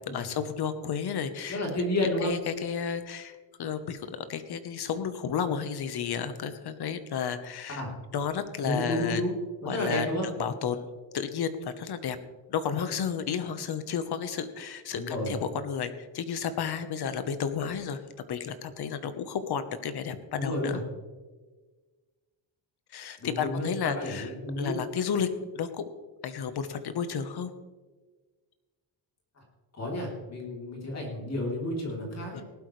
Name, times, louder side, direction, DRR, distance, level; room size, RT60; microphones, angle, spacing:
voice 1, 0.1-1.6 2.2-4.0 4.3-7.8 8.1-9.2 9.7-10.1 10.4-10.8 11.1-12.2 12.5-18.0 18.3-20.8 22.9-24.3 24.6-25.3 25.5-25.9 26.2-27.5 32.3-32.4, left 7 dB, 55° left, 10 dB, 1.2 m, -32 dB
voice 2, 1.5-2.3 7.7-7.9 8.6-9.3 9.6-10.3 14.9-15.4 20.4-20.8 23.2-24.7 29.4-29.5 29.8-32.4, left 1 dB, 35° left, -1 dB, 3.6 m, -31 dB
18.5 x 12.0 x 3.3 m, 1.3 s
cardioid pair, 160°, 47 cm